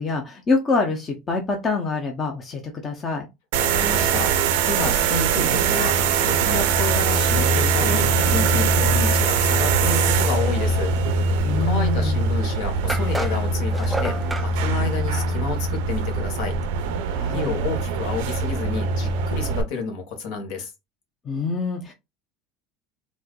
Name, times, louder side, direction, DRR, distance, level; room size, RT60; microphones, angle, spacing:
voice 1, 0.0-3.3 11.4-12.2 17.1-17.6 21.2-21.9, left 3 dB, 20° left, 0.7 m, -25 dB
sound 1, 3.5-19.6, right 4 dB, 80° right, 0.6 m, -22 dB
voice 2, 3.6-4.3 4.6-10.9 11.7-16.6 17.3-20.7, left 4 dB, 65° left, 1.3 m, -30 dB
sound 2, 12.9-14.5, right 2 dB, 5° right, 0.3 m, -30 dB
4.3 x 2.5 x 2.3 m
cardioid pair, 160°, 0 cm